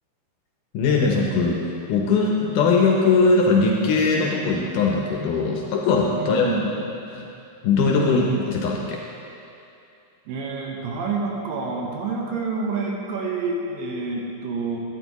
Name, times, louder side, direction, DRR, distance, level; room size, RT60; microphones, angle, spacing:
voice 1, 0.7-1.6 1.9-6.6 7.1-7.3 7.6-9.0, left 4 dB, 75° left, -1 dB, 2.1 m, -20 dB
voice 2, 6.2-6.7 10.3-14.8, right 4 dB, 75° right, -1 dB, 2.5 m, -28 dB
11.5 x 9.0 x 3.0 m, 2.7 s
omnidirectional pair, 4.2 m